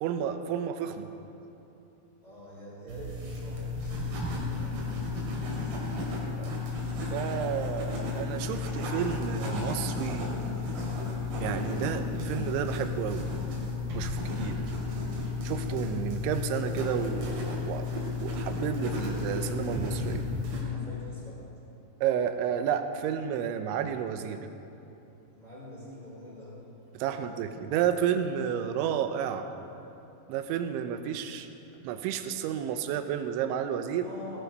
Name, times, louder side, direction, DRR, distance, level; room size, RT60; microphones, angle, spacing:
voice 1, 0.0-1.1 7.1-10.3 11.4-13.3 13.9-14.6 15.4-20.2 22.0-24.4 26.9-29.5 30.3-31.5 31.8-34.1, right 9 dB, 80° right, 8 dB, 3.1 m, -31 dB
voice 2, 2.2-5.8 20.7-21.5 25.4-26.6 27.1-27.3 34.0-34.4, left 1 dB, 10° right, -6 dB, 3.9 m, -46 dB
sound 1, 2.9-20.6, left 3 dB, 60° right, 4.5 m, -33 dB
17.5 x 11.5 x 5.4 m, 2.8 s
omnidirectional pair, 5.5 m